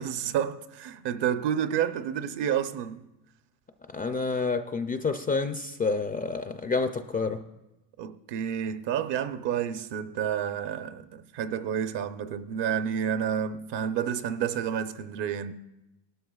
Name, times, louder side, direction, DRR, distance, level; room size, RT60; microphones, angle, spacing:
voice 1, 0.0-3.0 8.0-15.5, right 9 dB, 55° right, 0.8 m, -30 dB
voice 2, 3.9-7.4, left 4 dB, 20° left, 0.4 m, -29 dB
18.5 x 12.5 x 2.3 m
supercardioid pair, 100°, 50 cm